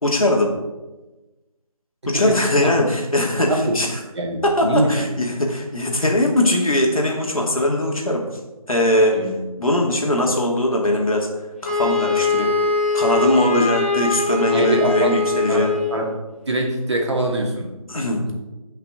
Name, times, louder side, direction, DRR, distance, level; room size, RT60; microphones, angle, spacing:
voice 1, 0.0-0.6 2.0-4.0 4.4-8.2 8.7-9.2 9.6-11.3 11.6-12.5 12.9-15.7 17.9-18.3, left 1 dB, 70° left, 0 dB, 2.4 m, -20 dB
voice 2, 2.0-2.9 3.5-3.6 4.1-5.1 9.1-9.3 14.5-15.1 15.5-15.6 15.9-16.0 16.5-17.7, right 1 dB, 50° right, 0 dB, 2.1 m, -23 dB
Wind instrument woodwind instrument, 11.6-16.1, left 4 dB, 15° left, 1.0 m, -22 dB
15.0 x 5.9 x 3.8 m, 1.1 s
figure-of-eight pair, 165°, 19 cm